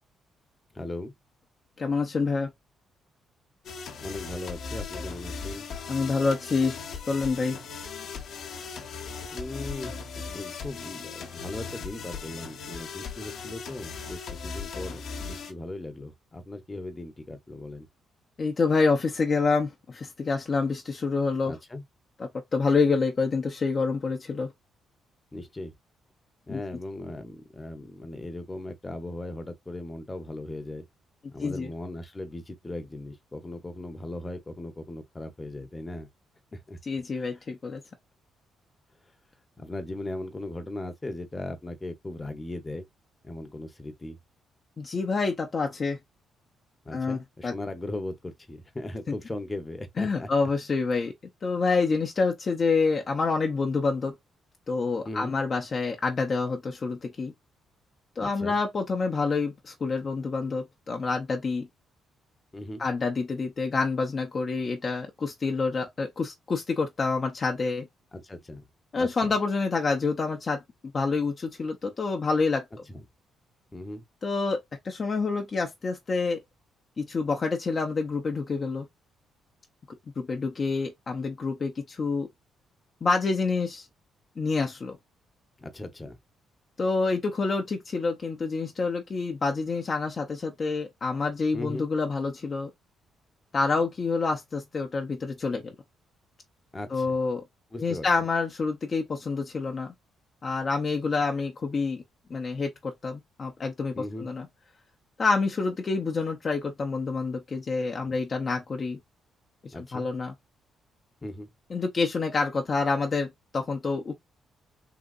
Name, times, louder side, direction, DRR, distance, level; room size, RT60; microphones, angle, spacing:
voice 1, 0.7-1.1 4.0-5.7 9.3-17.9 21.5-21.8 25.3-25.7 26.5-30.8 31.3-36.1 36.5-36.8 37.1-37.3 39.6-42.8 43.2-44.2 46.8-50.3 55.0-55.4 58.2-58.6 62.5-62.8 68.1-68.6 69.0-69.3 72.9-73.0 73.7-74.0 85.6-86.2 91.5-91.9 96.7-97.1 97.7-98.1 103.9-104.3 109.7-110.1 111.2-111.5, left 2 dB, 20° left, 0.9 m, -38 dB
voice 2, 1.8-2.5 5.9-6.8 7.1-7.6 18.4-21.6 22.2-24.5 26.5-26.6 31.4-31.7 36.9-37.8 44.8-46.0 46.9-47.5 50.0-51.1 51.4-54.1 54.7-57.3 58.2-61.7 62.8-67.9 68.9-70.6 70.9-72.6 74.2-74.6 74.8-76.4 77.0-78.9 80.2-82.3 83.0-83.9 84.4-85.0 86.8-92.7 93.5-95.7 96.9-97.4 97.8-99.9 100.4-102.0 102.3-104.5 105.2-109.0 109.6-110.3 111.7-114.2, left 4 dB, 40° left, 0.6 m, -27 dB
sound 1, 3.6-15.5, left 5 dB, 70° left, 1.1 m, -38 dB
3.7 x 2.8 x 2.4 m
cardioid pair, 90°, 0 cm